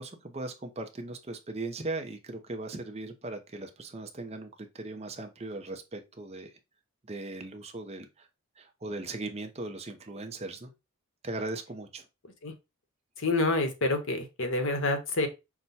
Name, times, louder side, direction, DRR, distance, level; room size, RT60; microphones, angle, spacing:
voice 1, 0.0-4.5 4.7-6.5 7.1-8.1 8.6-10.7 11.2-12.0, right 2 dB, 30° right, 0.7 m, -38 dB
voice 2, 13.2-15.3, left 2 dB, 60° left, 1.0 m, -27 dB
6.0 x 2.2 x 4.0 m
head